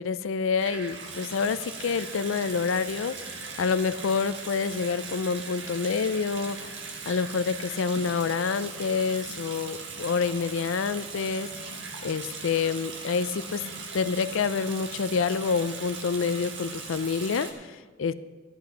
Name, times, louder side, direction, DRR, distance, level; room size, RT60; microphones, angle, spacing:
voice 1, 0.0-11.5 12.0-13.6 13.9-18.1, left 5 dB, 80° left, 14 dB, 0.4 m, -28 dB
Water tap faucet / Sink (filling or washing) / Bathtub (filling or washing), 0.6-17.5, right 4 dB, 65° right, 1.6 m, -39 dB
13.0 x 9.8 x 5.1 m, 1.4 s
head